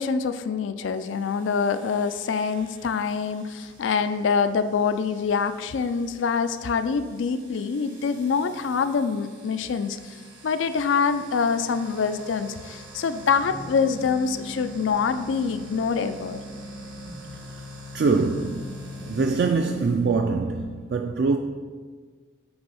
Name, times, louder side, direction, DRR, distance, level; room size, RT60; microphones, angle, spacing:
voice 1, 0.0-10.2 10.4-16.4, left 5 dB, 90° left, 0.4 m, -25 dB
sound 1, 0.9-20.0, equal, 85° right, 2.0 m, -44 dB
voice 2, 17.9-18.8 19.1-21.4, right 4 dB, 60° right, 0.3 m, -23 dB
7.9 x 3.4 x 5.5 m
head